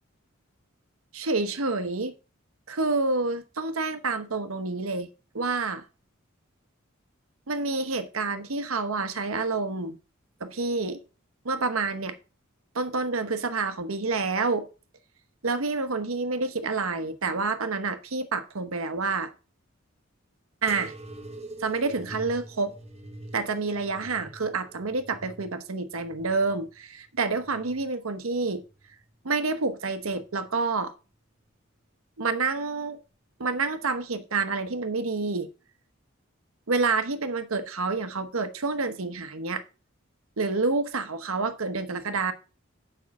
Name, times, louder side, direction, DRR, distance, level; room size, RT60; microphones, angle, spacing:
voice 1, 1.1-2.1 2.7-5.1 5.3-5.8 7.5-10.0 10.4-11.0 11.4-12.2 12.7-14.7 15.4-19.3 20.6-20.9 21.6-22.7 23.3-28.6 29.2-30.9 32.2-33.0 33.4-35.5 36.7-39.6 40.4-42.3, right 3 dB, 90° right, 1.0 m, -28 dB
sound 1, 20.7-27.9 28.4-29.2 29.9-30.5 31.4-31.6, right 2 dB, 30° right, 1.2 m, -45 dB
7.4 x 5.5 x 5.9 m
head